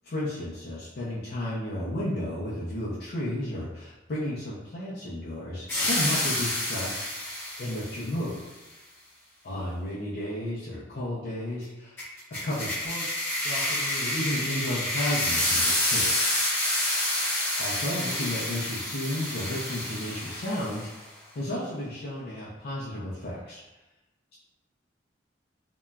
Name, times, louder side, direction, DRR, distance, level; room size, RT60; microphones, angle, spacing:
voice 1, 0.0-7.1 7.6-8.4 9.4-12.0 12.4-16.1 17.5-20.9 21.3-23.6, left 1 dB, 55° left, -8 dB, 0.5 m, -33 dB
sound 1, 5.7-8.0 12.0-20.9, left 1 dB, 15° left, 0.7 m, -28 dB
2.8 x 2.1 x 2.2 m, 1.0 s
head